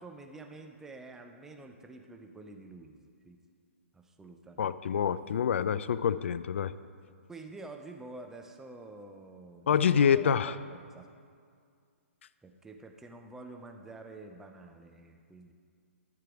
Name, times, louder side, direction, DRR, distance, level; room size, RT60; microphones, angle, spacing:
voice 1, 0.0-3.0 3.2-3.4 3.9-4.7 7.3-11.1 12.4-15.5, right 2 dB, 5° right, 4 dB, 0.4 m, -48 dB
voice 2, 4.6-6.7 9.7-10.5, left 7 dB, 60° left, 16 dB, 0.3 m, -26 dB
13.5 x 4.7 x 4.9 m, 2.2 s
figure-of-eight pair, 125°, 7 cm